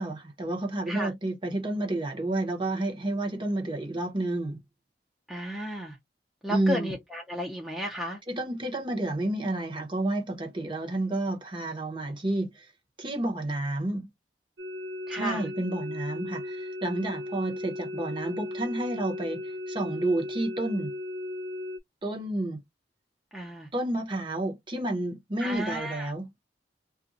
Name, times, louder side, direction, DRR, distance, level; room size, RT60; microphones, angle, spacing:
voice 1, 0.0-4.6 6.5-6.9 8.3-12.7 13.0-14.1 15.1-20.9 22.0-22.6 23.7-26.3, right 1 dB, 30° right, 0.9 m, -30 dB
voice 2, 5.3-6.0 6.4-8.2 15.1-15.5 23.3-23.7 25.4-26.1, equal, ahead, 0.6 m, -33 dB
sound 1, 14.6-21.8, left 1 dB, 85° right, 0.5 m, -36 dB
2.5 x 2.2 x 3.9 m
head